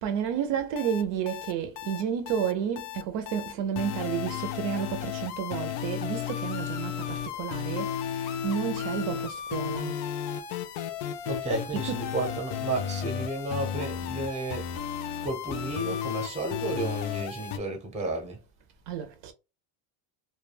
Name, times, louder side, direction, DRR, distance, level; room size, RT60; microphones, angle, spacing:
voice 1, 0.0-10.0 11.7-12.1 18.9-19.3, right 8 dB, 60° right, 0.5 m, -31 dB
sound 1, 0.8-17.6, left 9 dB, 70° left, 0.6 m, -34 dB
voice 2, 11.2-14.7 15.2-18.4, right 2 dB, 15° right, 0.6 m, -32 dB
2.2 x 2.1 x 3.2 m
cardioid pair, 145°, 49 cm